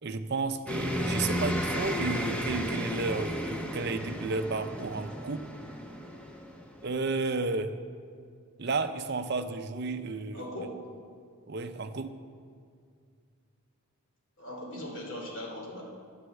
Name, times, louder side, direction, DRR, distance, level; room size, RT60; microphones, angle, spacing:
voice 1, 0.0-5.5 6.8-7.8 8.6-10.4 11.5-12.2, right 3 dB, 50° right, 9 dB, 0.6 m, -32 dB
sound 1, 0.7-7.1, equal, 5° left, 0.8 m, -34 dB
voice 2, 10.3-10.8 14.4-15.8, left 1 dB, 55° left, -1 dB, 2.8 m, -39 dB
10.5 x 9.7 x 7.9 m, 2.2 s
head